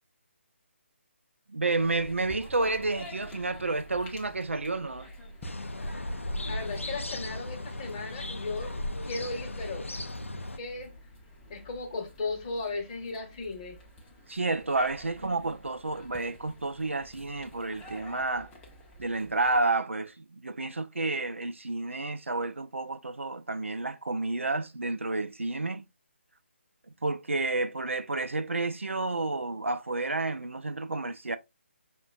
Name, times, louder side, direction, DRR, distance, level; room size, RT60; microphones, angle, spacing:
voice 1, 1.5-5.1 14.3-18.5 19.0-25.8 27.0-31.4, right 3 dB, 75° right, 0.4 m, -30 dB
sound 1, 1.8-19.6, equal, 10° left, 0.4 m, -49 dB
sound 2, 5.4-10.6, left 1 dB, 80° left, 0.4 m, -36 dB
voice 2, 6.5-9.9 10.6-11.0 11.5-13.8, left 3 dB, 25° left, 0.9 m, -36 dB
4.9 x 2.2 x 2.3 m
figure-of-eight pair, 145°, 7 cm